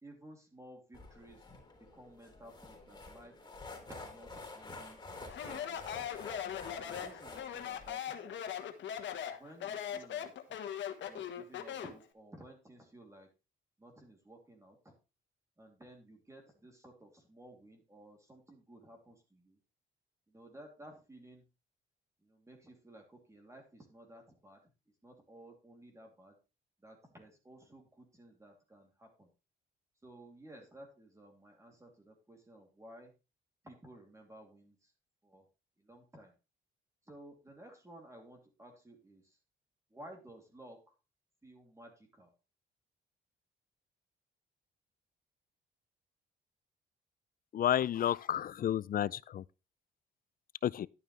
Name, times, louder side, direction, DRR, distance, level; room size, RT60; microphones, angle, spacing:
voice 1, 0.0-1.5 1.8-3.3 3.8-5.0 5.5-5.8 6.7-8.4 9.4-10.6 11.1-13.3 13.8-14.9 15.6-19.6 20.3-21.4 22.2-24.6 25.0-26.4 26.8-29.3 30.0-33.1 33.6-34.9 35.2-35.4 35.8-36.3 37.1-39.4 39.9-40.9 41.4-42.3, right 1 dB, 15° right, 2.9 m, -55 dB
sound 1, 0.9-7.9, left 3 dB, 20° left, 3.7 m, -49 dB
Speech, 5.3-12.0, left 9 dB, 70° left, 1.4 m, -40 dB
voice 2, 47.5-49.4 50.6-50.9, left 11 dB, 45° left, 0.4 m, -31 dB
11.0 x 9.2 x 3.3 m
cardioid pair, 90°, 20 cm